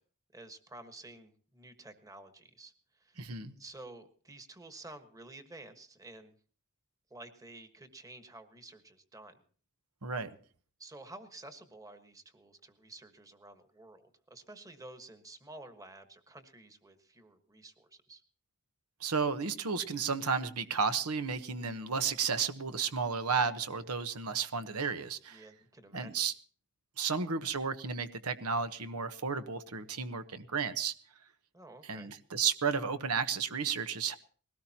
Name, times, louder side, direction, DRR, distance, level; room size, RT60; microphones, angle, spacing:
voice 1, 0.3-6.3 7.1-9.4 10.8-18.2 25.3-26.3 31.5-32.1, right 2 dB, 15° right, 8 dB, 1.4 m, -51 dB
voice 2, 3.2-3.5 10.0-10.3 19.0-25.5 25.9-26.3 27.0-30.9 31.8-34.2, right 5 dB, 85° right, 11 dB, 1.1 m, -33 dB
20.5 x 18.0 x 2.9 m, 0.42 s
head